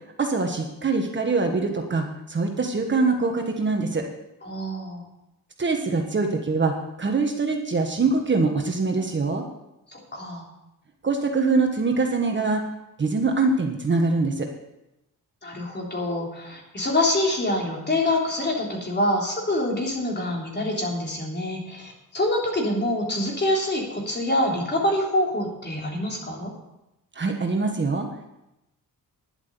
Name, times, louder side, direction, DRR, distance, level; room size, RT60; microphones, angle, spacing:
voice 1, 0.2-4.0 5.6-9.4 11.0-12.6 13.0-14.5 27.1-28.1, right 3 dB, 30° right, 3 dB, 1.4 m, -23 dB
voice 2, 4.4-5.0 9.9-10.4 15.4-26.5, left 1 dB, 30° left, -1 dB, 3.5 m, -26 dB
11.0 x 8.0 x 6.9 m, 0.91 s
cardioid pair, 115°, 35 cm